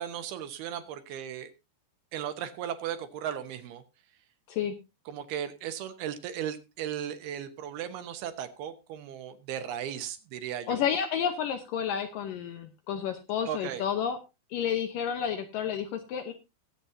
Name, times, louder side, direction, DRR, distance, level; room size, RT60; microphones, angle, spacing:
voice 1, 0.0-1.5 2.1-3.8 5.1-10.8 13.5-13.8, right 9 dB, 75° right, 9 dB, 2.8 m, -36 dB
voice 2, 10.7-14.2 14.5-16.3, left 8 dB, 75° left, 7 dB, 2.1 m, -30 dB
21.5 x 8.0 x 2.7 m, 0.26 s
omnidirectional pair, 4.8 m